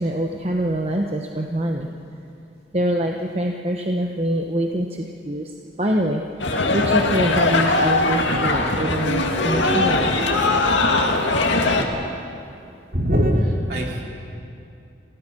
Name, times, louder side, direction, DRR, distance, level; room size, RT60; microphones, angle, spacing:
voice 1, 0.0-1.9 2.7-10.1 12.0-12.1, right 1 dB, 35° right, 2 dB, 1.0 m, -25 dB
sound 1, 6.4-11.8, left 2 dB, 90° left, 2.1 m, -20 dB
voice 2, 12.9-14.0, equal, 55° right, -1 dB, 3.4 m, -21 dB
28.0 x 17.5 x 6.1 m, 2.6 s
head